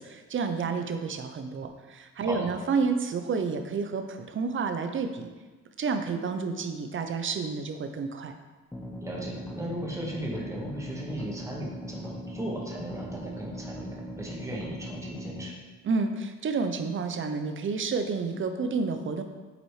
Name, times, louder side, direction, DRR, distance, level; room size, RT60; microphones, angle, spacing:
voice 1, 0.0-5.3 5.8-8.3 15.8-19.2, right 4 dB, 40° right, 7 dB, 0.7 m, -30 dB
sound 1, 8.7-15.5, equal, 10° left, 0.8 m, -39 dB
voice 2, 9.0-15.6, right 1 dB, 10° right, -2 dB, 1.5 m, -36 dB
8.0 x 4.1 x 3.2 m, 1.3 s
cardioid pair, 90°, 30 cm